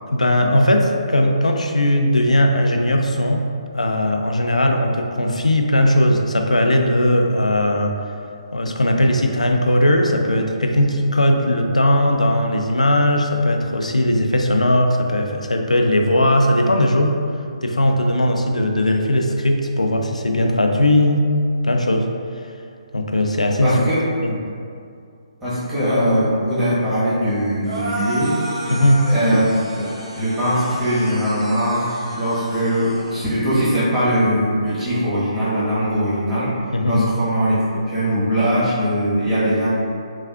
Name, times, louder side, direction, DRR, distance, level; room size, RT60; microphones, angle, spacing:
voice 1, 0.1-3.4 3.7-7.9 8.5-17.1 17.6-21.3 21.6-22.1 22.9-23.8 24.2-24.3 28.7-29.0 36.7-37.1, left 1 dB, 90° left, 3 dB, 0.4 m, -18 dB
voice 2, 23.6-24.0 25.4-28.4 29.1-29.4 29.7-36.5 36.9-39.7, equal, 10° right, -13 dB, 1.3 m, -21 dB
sound 1, 27.6-33.3, right 1 dB, 50° right, 1.1 m, -32 dB
5.8 x 2.4 x 2.3 m, 2.3 s
figure-of-eight pair, 140°, 4 cm